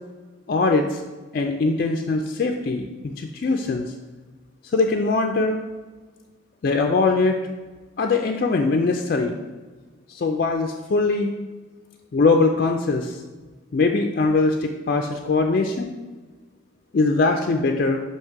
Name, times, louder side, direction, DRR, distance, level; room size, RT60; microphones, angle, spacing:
voice 1, 0.5-1.0 1.3-2.9 3.2-3.9 4.7-5.6 6.6-7.4 8.0-9.4 10.1-11.3 12.1-13.2 13.7-15.9 16.9-18.0, left 3 dB, 45° left, 3 dB, 0.3 m, -21 dB
7.2 x 2.9 x 4.6 m, 1.3 s
head